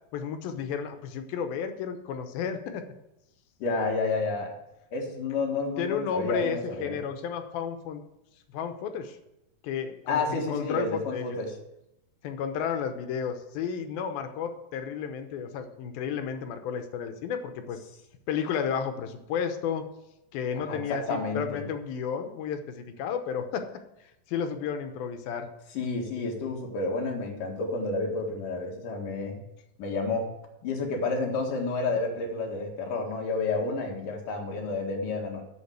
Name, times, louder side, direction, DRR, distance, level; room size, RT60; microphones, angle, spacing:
voice 1, 0.1-2.9 5.8-8.0 8.5-9.2 9.6-11.4 12.2-17.8 18.3-19.9 20.3-23.7 24.3-25.5, left 7 dB, 90° left, 8 dB, 2.8 m, -32 dB
voice 2, 3.6-4.5 4.9-7.0 10.1-11.6 20.5-21.6 25.7-29.4 29.8-30.3 30.6-35.4, left 3 dB, 65° left, 1 dB, 3.2 m, -30 dB
8.5 x 7.3 x 8.0 m, 0.88 s
omnidirectional pair, 4.1 m